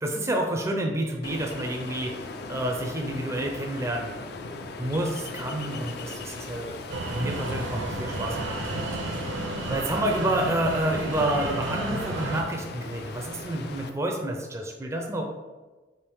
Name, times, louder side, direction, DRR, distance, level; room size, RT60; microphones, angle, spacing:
voice 1, 0.0-4.1 4.8-6.8 7.0-9.2 9.7-15.2, right 1 dB, 15° right, 1 dB, 0.4 m, -29 dB
Ocean, 1.2-13.9, left 3 dB, 60° left, 0.4 m, -39 dB
sound 1, 6.9-12.4, right 2 dB, 85° right, 0.6 m, -32 dB
3.5 x 2.8 x 4.5 m, 1.2 s
head